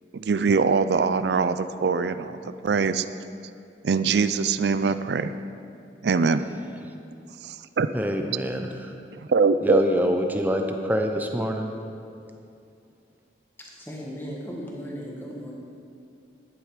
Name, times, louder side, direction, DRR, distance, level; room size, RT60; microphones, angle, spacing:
voice 1, 0.1-3.1 3.8-5.3 6.0-6.5 6.8-6.9 7.4-7.9 9.1-9.8, right 5 dB, 75° right, 12 dB, 0.4 m, -23 dB
voice 2, 7.9-8.9 9.6-11.7, equal, 10° right, 4 dB, 0.6 m, -25 dB
voice 3, 13.6-15.5, equal, 10° left, -3 dB, 1.6 m, -37 dB
11.5 x 9.5 x 5.1 m, 2.5 s
head